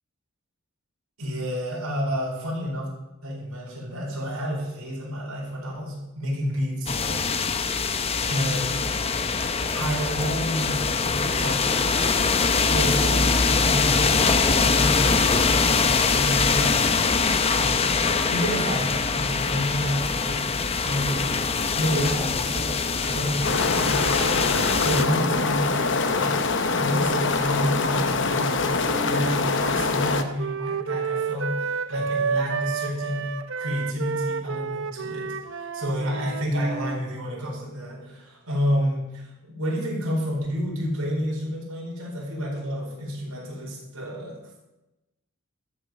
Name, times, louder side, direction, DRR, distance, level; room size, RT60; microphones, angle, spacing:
voice 1, 1.2-2.9 3.2-7.2 8.2-8.7 9.7-12.0 12.7-17.3 17.5-20.4 20.8-21.3 21.8-26.4 26.7-33.2 33.6-44.4, equal, 85° right, -3 dB, 4.4 m, -30 dB
sound 1, 6.9-25.0, left 4 dB, 25° left, 0.7 m, -23 dB
sound 2, 23.4-30.2, left 4 dB, 55° left, 0.9 m, -24 dB
Wind instrument woodwind instrument, 28.8-37.0, right 5 dB, 60° right, 0.6 m, -30 dB
13.0 x 6.5 x 7.8 m, 0.98 s
head